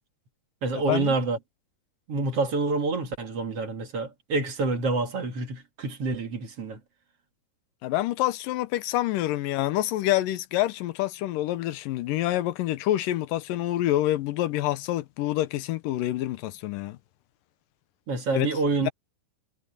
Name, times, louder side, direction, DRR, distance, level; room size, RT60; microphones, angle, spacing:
voice 1, 0.6-1.4 2.1-6.8 18.1-18.9, right 3 dB, 50° right, 2.9 m, -27 dB
voice 2, 7.8-17.0 18.3-18.5 18.8-18.9, left 14 dB, 90° left, 2.5 m, -27 dB
omnidirectional pair, 3.8 m